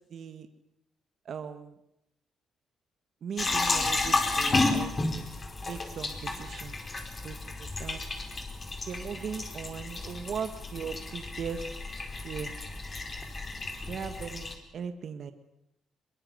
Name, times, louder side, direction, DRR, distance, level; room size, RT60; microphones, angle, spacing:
voice 1, 0.1-0.5 1.2-1.7 3.2-4.9 5.7-6.8 7.2-8.0 8.9-11.6 12.2-12.6 13.9-14.5 14.7-15.3, right 7 dB, 60° right, 8 dB, 1.7 m, -38 dB
sound 1, 3.4-14.5, left 3 dB, 30° left, 4.5 m, -32 dB
22.5 x 22.0 x 7.9 m, 0.78 s
cardioid pair, 90°, 0 cm